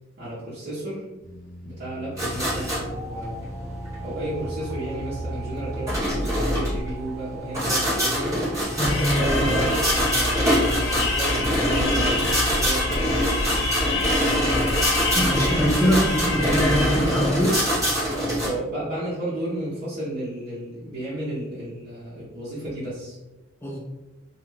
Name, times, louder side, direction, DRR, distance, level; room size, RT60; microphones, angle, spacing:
voice 1, 0.2-1.0 1.6-3.5 4.0-8.4 9.1-10.5 10.8-13.5 15.8-16.0 18.4-23.2, right 1 dB, 55° right, -10 dB, 0.8 m, -33 dB
sound 1, 1.2-6.9, equal, 55° left, 0.9 m, -35 dB
sound 2, 2.2-18.5, equal, 15° right, 1.2 m, -25 dB
sound 3, 8.8-17.4, left 2 dB, 70° left, 0.5 m, -26 dB
voice 2, 8.8-9.5 15.1-17.6 23.6-23.8, equal, 10° left, -2 dB, 0.3 m, -23 dB
2.4 x 2.3 x 3.0 m, 1.0 s
head